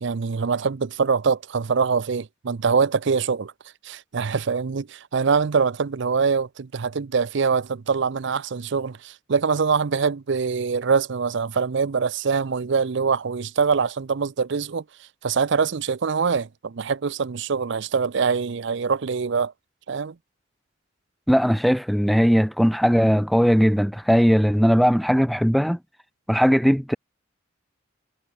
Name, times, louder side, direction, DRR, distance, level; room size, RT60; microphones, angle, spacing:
voice 1, 0.0-3.5 3.8-14.8 15.2-19.5 19.9-20.2, right 5 dB, 65° right, 0.6 m, -24 dB
voice 2, 21.3-25.8 26.3-27.0, equal, ahead, 0.5 m, -19 dB
head